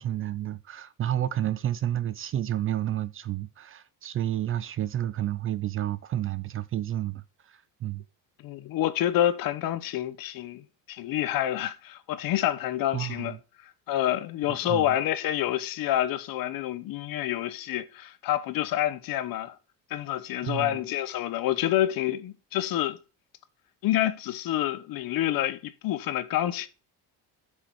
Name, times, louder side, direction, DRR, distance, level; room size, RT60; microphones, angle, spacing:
voice 1, 0.0-8.0 12.9-13.4 14.7-15.0 20.4-20.8, right 12 dB, 35° right, 0.4 m, -30 dB
voice 2, 8.4-13.4 13.9-19.5 19.9-23.0 23.8-26.7, left 13 dB, 60° left, 1.1 m, -28 dB
7.4 x 6.6 x 4.7 m
cardioid pair, 165°, 39 cm